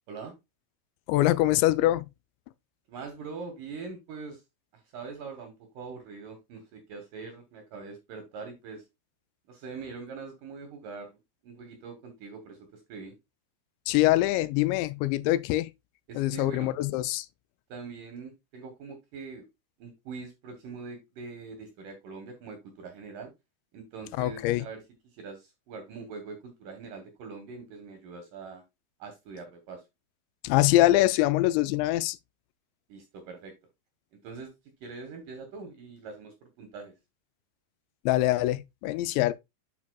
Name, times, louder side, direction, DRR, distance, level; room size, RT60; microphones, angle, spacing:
voice 1, 1.1-2.1 13.9-15.7 16.2-17.3 24.2-24.7 30.4-32.2 38.1-39.3, left 16 dB, 85° left, 2.8 m, -24 dB
voice 2, 2.9-4.4 4.7-8.8 9.5-13.2 16.1-16.7 17.7-19.5 19.8-23.3 23.7-24.8 25.1-28.6 29.0-29.8 32.9-33.5 34.2-34.5 34.8-36.9, right 4 dB, 70° right, 2.1 m, -43 dB
10.5 x 4.7 x 2.3 m
omnidirectional pair, 5.1 m